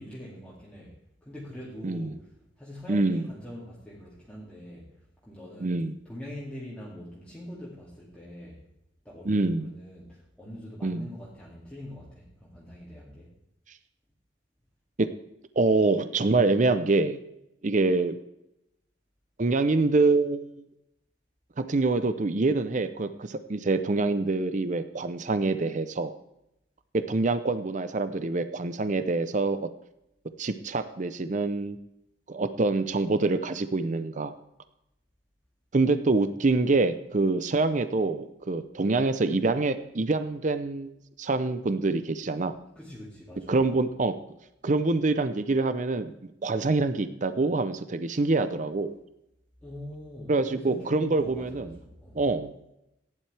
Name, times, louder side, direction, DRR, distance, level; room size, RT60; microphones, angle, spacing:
voice 1, 0.0-8.6 9.0-13.3 42.7-43.6 49.6-52.2, equal, 5° left, -7 dB, 2.4 m, -43 dB
voice 2, 2.9-3.3 5.6-5.9 9.3-9.7 10.8-11.1 15.0-15.1 15.6-17.2 17.6-18.1 19.4-20.5 21.6-26.1 26.9-29.7 30.4-31.8 32.3-34.3 35.7-40.9 41.2-42.6 43.5-44.1 44.6-46.1 46.4-49.0 50.3-51.7 52.1-52.5, right 3 dB, 45° right, 11 dB, 0.6 m, -25 dB
16.0 x 10.5 x 3.4 m, 0.84 s
head